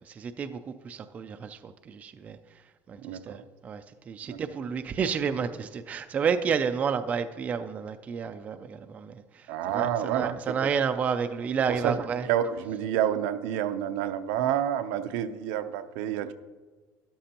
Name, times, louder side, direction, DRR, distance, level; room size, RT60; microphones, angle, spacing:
voice 1, 0.2-0.6 0.8-2.4 2.9-9.1 9.7-12.3, right 6 dB, 20° right, 9 dB, 0.3 m, -30 dB
voice 2, 9.5-10.6 11.7-12.0 12.3-16.3, right 10 dB, 80° right, 9 dB, 0.6 m, -29 dB
13.0 x 10.0 x 2.9 m, 1.3 s
cardioid pair, 180°, 8 cm